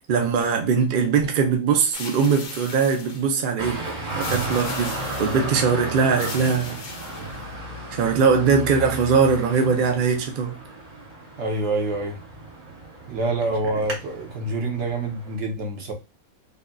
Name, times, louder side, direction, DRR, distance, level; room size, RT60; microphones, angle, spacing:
voice 1, 0.1-3.8 4.1-6.8 7.9-10.6, right 5 dB, 75° right, 0.4 m, -21 dB
sound 1, 1.9-3.4 4.2-5.5 6.1-7.6, left 3 dB, 70° left, 1.2 m, -38 dB
Traffic noise roadway noise, 3.6-15.3, right 2 dB, 30° right, 0.9 m, -34 dB
voice 2, 11.4-12.2 13.1-15.9, right 2 dB, 55° right, 1.1 m, -26 dB
3.5 x 2.5 x 2.2 m
omnidirectional pair, 1.6 m